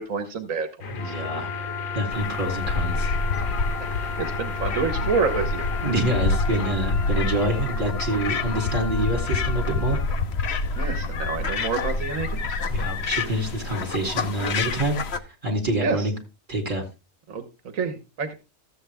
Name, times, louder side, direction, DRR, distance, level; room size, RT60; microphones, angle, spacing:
voice 1, 0.0-1.1 4.0-5.6 10.8-12.6 15.8-16.1 17.3-18.3, right 5 dB, 80° right, 7 dB, 1.5 m, -28 dB
sound 1, 0.8-6.2, left 4 dB, 85° left, 1.5 m, -35 dB
voice 2, 0.9-1.5 1.9-3.1 5.8-10.0 12.7-15.0 15.4-16.1 16.5-16.8, right 1 dB, 40° right, 2 dB, 3.1 m, -26 dB
Wind instrument woodwind instrument, 1.0-10.0, left 4 dB, 5° left, 3.7 m, -35 dB
sound 2, 2.1-15.2, left 3 dB, 55° left, 1.0 m, -27 dB
13.5 x 8.1 x 3.4 m, 0.29 s
omnidirectional pair, 1.4 m